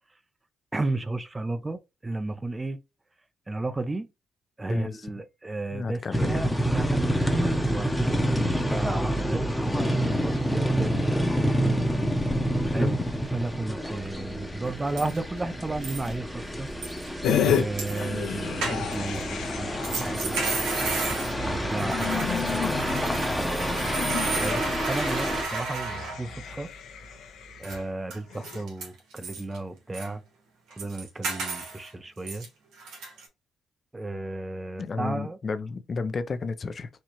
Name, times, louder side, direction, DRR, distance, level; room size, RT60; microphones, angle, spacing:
voice 1, 0.7-2.8 3.5-4.1 4.6-11.7 12.7-16.7 17.5-20.4 21.4-23.9 24.4-26.7 27.6-30.2 30.8-32.5 33.9-35.4, right 2 dB, 20° right, 0.5 m, -33 dB
voice 2, 4.7-5.1 5.7-6.5 12.8-13.0 21.1-21.2 34.8-36.9, left 4 dB, 40° left, 0.5 m, -32 dB
sound 1, 6.1-25.4, equal, 5° left, 0.8 m, -28 dB
sound 2, 14.7-14.8 15.0-15.4 15.8-16.1 16.8-17.1 17.8-18.0 18.6-19.2 19.8-26.5 27.6-27.8 28.1-28.2 28.4-29.6 29.9-30.1 30.7-31.9 32.3-32.5 32.8-33.3, right 4 dB, 85° right, 1.4 m, -33 dB
sound 3, 17.2-17.6 17.9-27.8 28.3-28.6, left 7 dB, 85° left, 0.8 m, -32 dB
4.3 x 2.3 x 3.0 m
cardioid pair, 90°, 0 cm